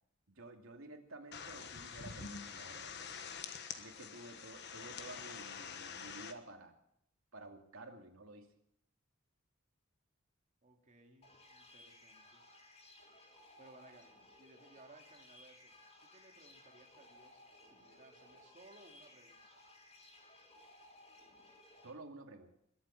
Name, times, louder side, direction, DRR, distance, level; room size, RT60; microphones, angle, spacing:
voice 1, 0.3-3.1 3.8-6.7 7.3-8.5 21.8-22.5, right 2 dB, 75° right, 3 dB, 2.5 m, -52 dB
sound 1, 1.3-6.3, left 6 dB, 55° left, 1.3 m, -46 dB
voice 2, 10.6-12.4 13.6-14.1 14.4-15.7 16.0-19.6, right 2 dB, 35° right, 3 dB, 2.6 m, -61 dB
sound 2, 11.2-21.9, left 2 dB, 30° left, 3.1 m, -60 dB
22.0 x 8.7 x 7.1 m, 0.73 s
head